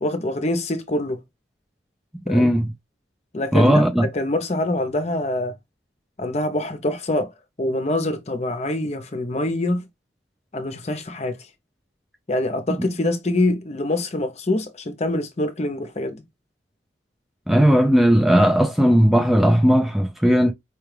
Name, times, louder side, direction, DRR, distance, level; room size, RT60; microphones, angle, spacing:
voice 1, 0.0-1.2 2.3-2.5 3.3-3.8 4.1-5.5 6.2-7.3 7.6-9.9 10.5-11.4 12.3-16.2, left 1 dB, 35° left, 0.6 m, -25 dB
voice 2, 2.3-2.7 3.5-4.1 17.5-20.5, equal, ahead, 0.3 m, -17 dB
4.6 x 2.3 x 3.2 m
head